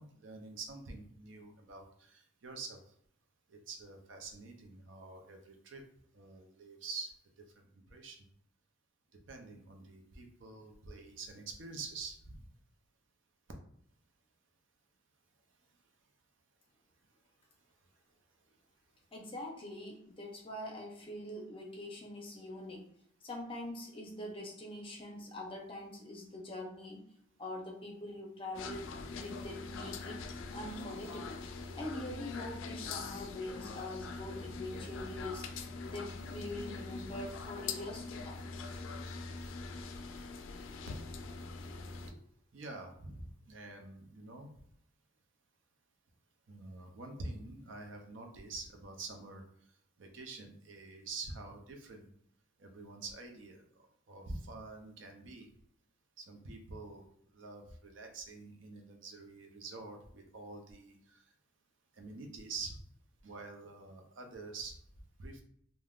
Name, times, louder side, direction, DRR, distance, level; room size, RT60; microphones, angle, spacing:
voice 1, 0.0-2.8 3.5-5.9 6.1-7.1 7.9-8.2 9.3-12.4 42.5-44.5 46.5-49.4 50.0-52.1 52.6-53.6 54.1-55.5 56.2-57.1 57.3-61.2 62.0-62.8 63.2-64.7 65.2-65.4, right 3 dB, 75° right, 4 dB, 0.5 m, -46 dB
voice 2, 19.1-22.9 23.2-27.0 27.4-30.2 30.5-31.4 31.7-38.4, left 1 dB, 30° left, 0 dB, 0.5 m, -44 dB
sound 1, 28.5-42.1, left 4 dB, 80° left, 0.3 m, -43 dB
3.4 x 2.1 x 2.3 m, 0.67 s
head